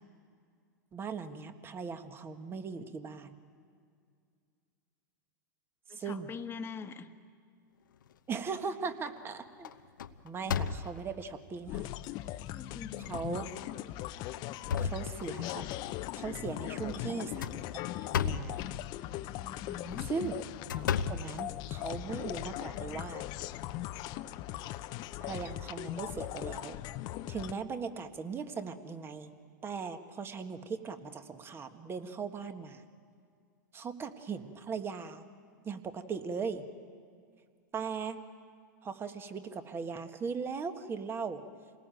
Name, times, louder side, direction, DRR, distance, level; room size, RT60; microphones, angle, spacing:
voice 1, 0.9-3.3 5.9-6.3 8.3-9.7 10.2-11.9 13.1-13.5 14.8-15.7 16.1-17.8 18.1-18.6 20.1-20.4 20.8-23.2 25.2-26.8 27.3-29.3 29.6-32.8 33.7-35.2 35.6-36.6 37.7-38.2 38.8-41.4, right 5 dB, 20° right, 9 dB, 1.6 m, -39 dB
voice 2, 5.9-7.1 12.1-13.1 16.7-17.2 19.4-20.1, left 5 dB, 25° left, 7 dB, 1.5 m, -44 dB
sound 1, 8.0-8.6 9.1-9.3 9.6-11.2 11.9-12.0 12.5-12.6 13.5-13.7 14.2-15.6 17.2-18.6 19.8-22.0, left 7 dB, 85° left, 0.9 m, -35 dB
sound 2, 11.7-27.5, left 14 dB, 45° left, 0.8 m, -39 dB
27.5 x 19.0 x 9.2 m, 2.2 s
hypercardioid pair, 120°, 10 cm